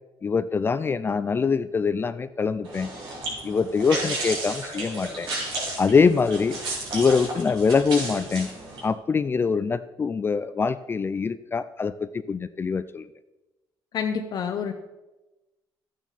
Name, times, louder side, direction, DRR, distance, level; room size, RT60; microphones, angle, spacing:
voice 1, 0.2-2.9 3.4-5.3 5.8-6.6 6.9-8.5 8.8-13.1, left 5 dB, 25° left, 13 dB, 0.4 m, -24 dB
sound 1, 2.6-8.8, right 2 dB, 65° right, 4.1 m, -33 dB
voice 2, 13.9-14.7, left 7 dB, 55° left, 4 dB, 0.9 m, -28 dB
12.5 x 9.1 x 4.2 m, 1.0 s
cardioid pair, 105°, 8 cm